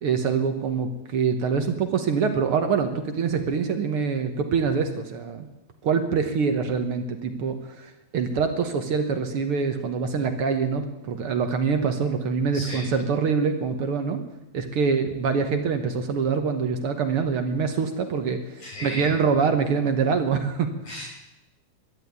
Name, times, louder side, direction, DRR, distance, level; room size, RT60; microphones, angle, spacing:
voice 1, 0.0-5.5 5.8-14.2 14.5-20.7, right 5 dB, 60° right, 7 dB, 1.7 m, -25 dB
voice 2, 12.5-12.9 18.6-19.2 20.8-21.0, equal, 85° left, -6 dB, 7.7 m, -35 dB
12.5 x 11.0 x 9.4 m, 0.97 s
omnidirectional pair, 3.3 m